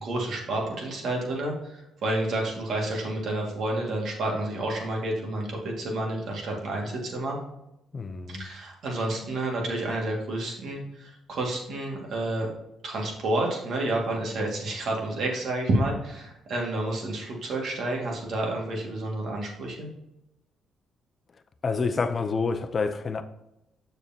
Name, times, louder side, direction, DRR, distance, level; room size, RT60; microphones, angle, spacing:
voice 1, 0.0-7.4 8.3-12.5 12.8-19.9, right 1 dB, 65° right, 2.2 m, -30 dB
voice 2, 7.9-8.5 21.6-23.2, left 4 dB, 40° left, 0.6 m, -28 dB
6.9 x 6.6 x 2.9 m
cardioid pair, 90°, 0 cm